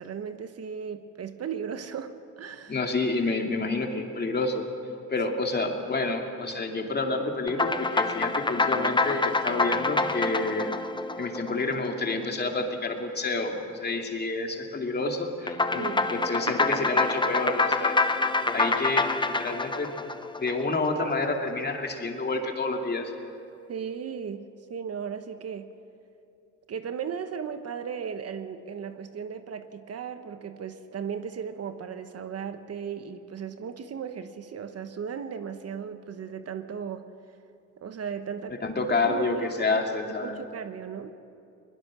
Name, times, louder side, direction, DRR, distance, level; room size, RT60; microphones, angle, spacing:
voice 1, 0.0-2.8 15.8-16.2 23.7-25.7 26.7-37.1 37.8-38.6 39.1-39.8 40.2-41.2, right 7 dB, 55° right, 9 dB, 1.2 m, -36 dB
voice 2, 2.7-4.6 5.1-10.7 11.2-18.0 18.5-19.9 20.4-23.1 38.6-40.4, left 3 dB, 35° left, 2 dB, 2.7 m, -29 dB
sound 1, 7.5-12.1 15.5-20.9, left 3 dB, 15° left, 0.9 m, -26 dB
21.5 x 20.5 x 6.3 m, 2.6 s
cardioid pair, 90°, 30 cm